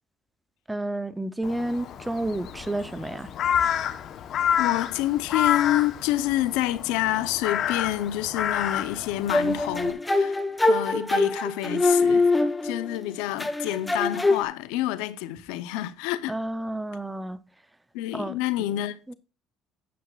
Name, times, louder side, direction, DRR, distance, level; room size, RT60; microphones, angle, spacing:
voice 1, 0.7-3.3 16.3-17.4 18.1-18.3 19.1-19.2, right 1 dB, 10° right, 0.6 m, -30 dB
Crow, 1.4-9.9, left 9 dB, 55° left, 1.0 m, -29 dB
voice 2, 4.6-12.3 12.6-16.4 17.9-19.1, left 14 dB, 85° left, 0.7 m, -28 dB
sound 1, 9.3-13.0 13.4-14.4, left 3 dB, 10° left, 1.0 m, -23 dB
11.0 x 9.3 x 2.4 m
cardioid pair, 110°, 0 cm